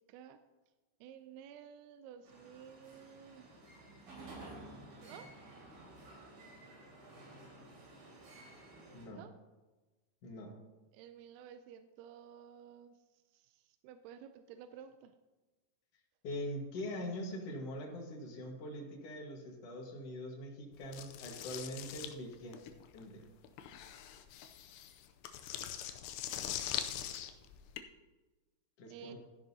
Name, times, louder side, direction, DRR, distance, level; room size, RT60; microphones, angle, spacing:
voice 1, 0.1-0.4 1.0-3.5 5.0-5.3 9.1-9.3 10.9-13.0 13.3-15.1 28.9-29.1, right 9 dB, 85° right, 9 dB, 2.3 m, -53 dB
sound 1, 2.3-9.1, right 2 dB, 55° right, 4.6 m, -53 dB
voice 2, 8.9-9.3 10.2-10.5 16.2-22.6 22.9-23.3 28.8-29.1, left 1 dB, 55° left, 0 dB, 1.7 m, -43 dB
sound 2, 20.9-27.8, left 10 dB, 80° left, 2.5 m, -42 dB
13.0 x 11.0 x 2.8 m, 1.2 s
omnidirectional pair, 5.0 m